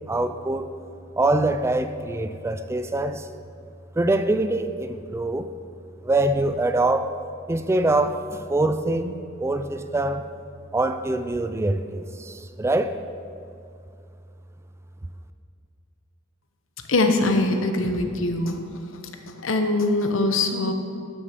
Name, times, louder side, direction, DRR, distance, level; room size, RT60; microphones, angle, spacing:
voice 1, 0.1-0.7 1.2-3.3 4.0-5.5 6.0-7.1 7.5-10.3 10.7-13.0, right 2 dB, 15° right, 10 dB, 0.3 m, -24 dB
voice 2, 16.9-18.6 19.4-20.7, left 2 dB, 70° left, 5 dB, 1.0 m, -22 dB
12.0 x 6.7 x 5.9 m, 2.4 s
head